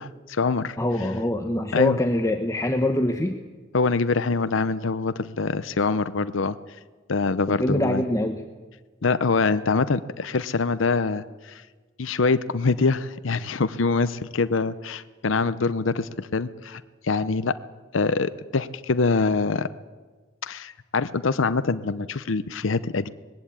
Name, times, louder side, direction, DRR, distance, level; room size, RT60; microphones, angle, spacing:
voice 1, 0.0-0.8 1.7-2.0 3.7-6.6 7.1-8.0 9.0-11.6 12.0-17.5 17.9-19.7 20.4-23.1, left 4 dB, 80° left, 13 dB, 0.7 m, -24 dB
voice 2, 0.8-3.4 7.5-8.4, left 1 dB, 15° left, 5 dB, 1.0 m, -24 dB
20.0 x 16.0 x 8.7 m, 1.3 s
head